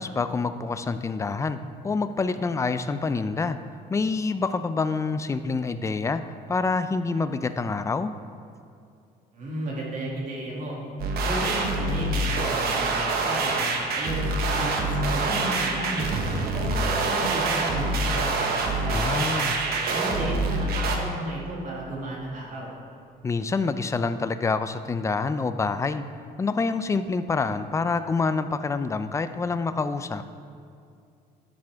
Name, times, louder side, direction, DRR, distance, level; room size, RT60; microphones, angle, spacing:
voice 1, 0.0-1.6 1.8-3.6 3.9-6.2 6.5-8.1 18.9-19.6 23.2-26.0 26.4-30.2, left 4 dB, 15° left, 11 dB, 0.4 m, -27 dB
voice 2, 9.3-10.8 11.3-16.1 16.5-19.0 19.6-22.7, right 1 dB, 50° right, -4 dB, 2.5 m, -33 dB
sound 1, 11.0-21.0, right 3 dB, 65° right, 1.2 m, -26 dB
12.0 x 7.7 x 3.5 m, 2.4 s
cardioid pair, 110°, 17 cm